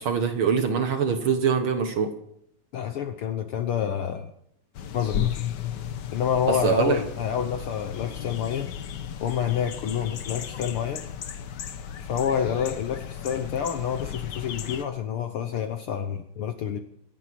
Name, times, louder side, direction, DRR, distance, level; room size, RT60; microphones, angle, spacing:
voice 1, 0.0-2.1 6.5-7.0, right 6 dB, 55° right, 7 dB, 1.7 m, -23 dB
voice 2, 2.7-4.3 4.9-5.4 6.1-8.7 9.2-11.1 12.1-16.8, left 8 dB, 65° left, 8 dB, 1.4 m, -28 dB
sound 1, 4.7-14.9, left 9 dB, 90° left, 0.9 m, -35 dB
26.0 x 9.1 x 6.1 m, 0.71 s
omnidirectional pair, 3.3 m